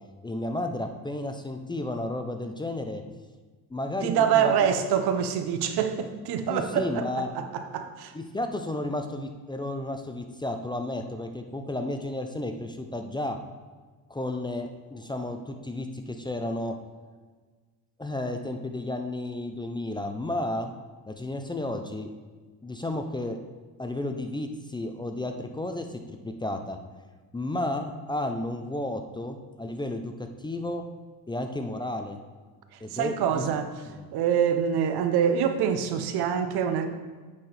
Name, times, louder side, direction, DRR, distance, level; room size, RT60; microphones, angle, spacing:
voice 1, 0.2-3.0 3.7-4.1 4.3-4.5 6.5-7.3 8.1-13.4 14.1-16.7 18.0-20.7 21.1-22.1 22.6-23.4 23.8-26.8 27.3-30.8 31.3-32.2 32.8-33.4 33.9-34.1, left 1 dB, 10° left, 5 dB, 0.5 m, -32 dB
voice 2, 4.0-8.1 32.9-33.7 34.1-36.9, right 8 dB, 70° right, 8 dB, 0.8 m, -25 dB
9.5 x 4.5 x 3.3 m, 1.4 s
cardioid pair, 100°, 40 cm